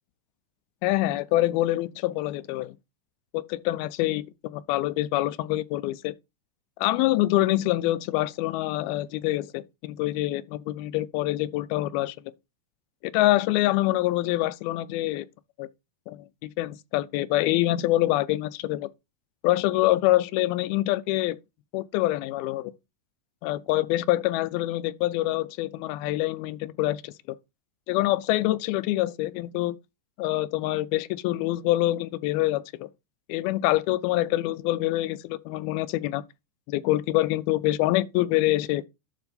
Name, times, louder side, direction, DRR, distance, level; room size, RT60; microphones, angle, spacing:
voice 1, 0.8-2.8 3.3-6.1 6.8-12.2 13.0-15.3 15.6-15.7 16.1-18.9 19.4-21.4 21.7-22.7 23.4-27.1 27.9-29.7 30.2-32.9 33.3-36.2 36.7-38.8, left 16 dB, 80° left, 2.3 m, -25 dB
11.5 x 4.0 x 5.2 m
omnidirectional pair, 4.7 m